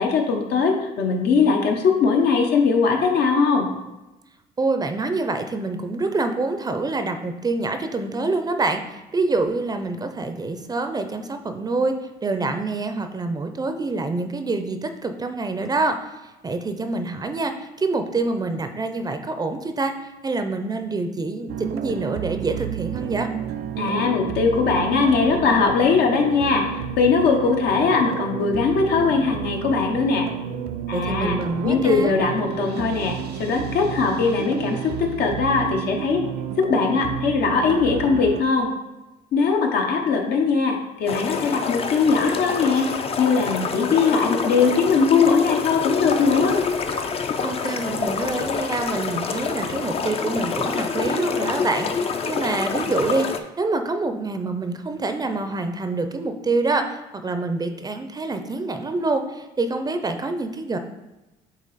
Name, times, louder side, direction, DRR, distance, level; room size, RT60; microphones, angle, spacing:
voice 1, 0.0-3.7 23.8-30.3 30.9-31.4 31.6-36.2 36.6-38.7 39.3-42.9 43.2-46.6, left 5 dB, 75° left, 2 dB, 1.0 m, -20 dB
voice 2, 4.6-12.0 12.2-16.1 16.4-23.3 30.9-32.1 47.4-60.8, right 3 dB, 25° right, 7 dB, 0.5 m, -26 dB
sound 1, 21.5-38.4, right 8 dB, 75° right, 0.5 m, -31 dB
sound 2, 41.1-53.4, left 5 dB, 35° left, 0.5 m, -27 dB
8.3 x 2.9 x 4.1 m, 1.0 s
cardioid pair, 110°, 17 cm